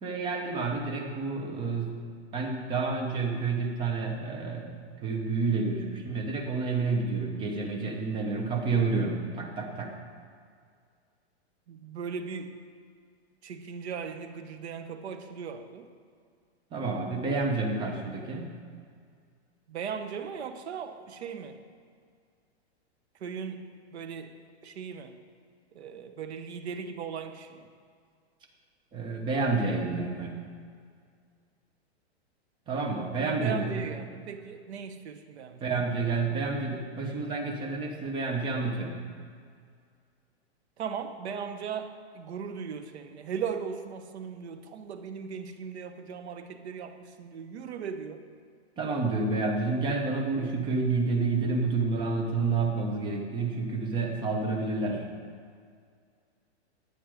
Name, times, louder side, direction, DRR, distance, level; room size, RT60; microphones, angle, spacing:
voice 1, 0.0-1.9 2.3-4.8 5.0-10.0 16.7-18.6 28.9-30.4 32.7-33.8 35.6-39.0 48.8-55.1, right 3 dB, 15° right, 2 dB, 0.9 m, -29 dB
voice 2, 11.7-12.6 13.4-15.9 19.7-21.6 23.2-25.1 25.7-27.7 33.2-35.7 40.8-48.2, right 6 dB, 75° right, 9 dB, 1.0 m, -38 dB
11.0 x 9.6 x 5.0 m, 2.2 s
hypercardioid pair, 155°, 33 cm